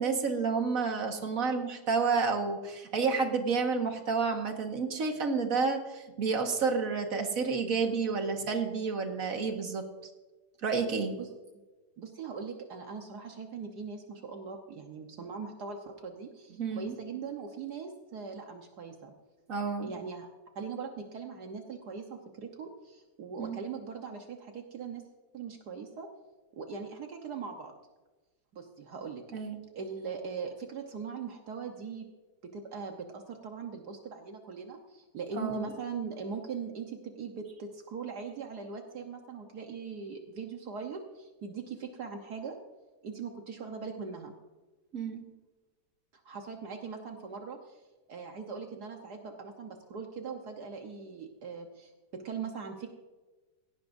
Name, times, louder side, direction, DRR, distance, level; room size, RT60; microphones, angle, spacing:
voice 1, 0.0-9.8 10.6-11.1 16.6-17.0 19.5-19.9 23.4-23.6 29.3-29.6 35.4-35.7 44.9-45.2, right 4 dB, 55° right, 4 dB, 1.9 m, -30 dB
voice 2, 12.0-19.1 19.8-20.3 20.5-25.0 25.3-26.1 26.6-27.7 28.5-29.2 29.7-32.1 32.5-42.6 43.0-44.3 46.1-47.8 48.1-52.9, right 5 dB, 70° right, 3 dB, 1.6 m, -40 dB
17.5 x 17.5 x 2.6 m, 1.2 s
omnidirectional pair, 1.8 m